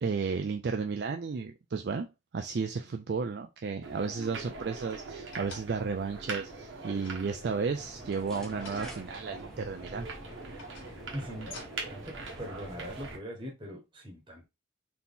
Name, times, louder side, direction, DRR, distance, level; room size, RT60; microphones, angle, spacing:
voice 1, 0.0-10.1, right 5 dB, 55° right, 0.4 m, -33 dB
sound 1, 3.8-13.2, right 3 dB, 85° right, 1.2 m, -42 dB
sound 2, 5.1-6.0 6.8-7.8 8.5-9.6 10.3-12.0 12.7-12.8, left 3 dB, 80° left, 1.6 m, -50 dB
sound 3, 7.7-13.1, equal, 5° left, 0.7 m, -49 dB
voice 2, 11.1-11.5 11.9-14.4, equal, 25° right, 1.1 m, -41 dB
4.0 x 2.9 x 3.6 m
head